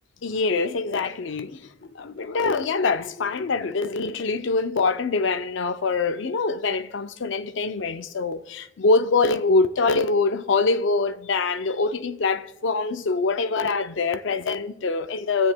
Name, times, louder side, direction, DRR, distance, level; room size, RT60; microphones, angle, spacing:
voice 1, 0.2-1.6 2.0-15.5, left 3 dB, 65° left, 0.5 m, -24 dB
19.0 x 7.4 x 2.2 m
head